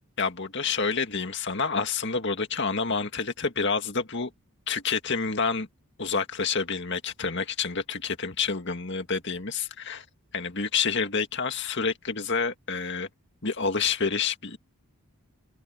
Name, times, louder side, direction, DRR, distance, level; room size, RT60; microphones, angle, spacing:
voice 1, 0.2-4.3 4.7-5.7 6.0-10.0 10.3-13.1 13.4-14.6, left 5 dB, 50° left, 2.1 m, -28 dB
head